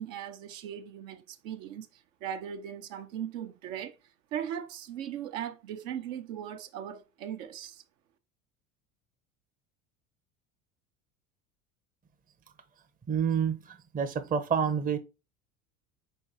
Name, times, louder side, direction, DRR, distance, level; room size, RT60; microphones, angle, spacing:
voice 1, 0.0-4.0 4.3-7.8, right 9 dB, 65° right, 0.9 m, -38 dB
voice 2, 13.1-15.0, right 7 dB, 20° right, 0.7 m, -28 dB
4.6 x 4.4 x 2.6 m
hypercardioid pair, 75°, 43 cm